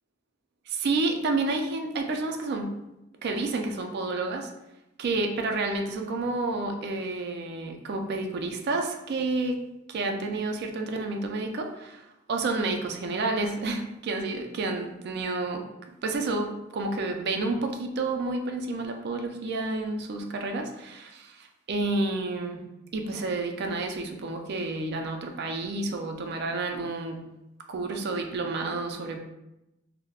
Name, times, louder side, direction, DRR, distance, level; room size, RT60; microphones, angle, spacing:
voice 1, 0.7-2.7 3.2-4.5 5.0-9.6 9.9-15.6 16.0-22.6 22.9-27.3 27.7-29.2, right 3 dB, 55° right, 4 dB, 0.3 m, -30 dB
2.3 x 2.1 x 3.3 m, 0.93 s
head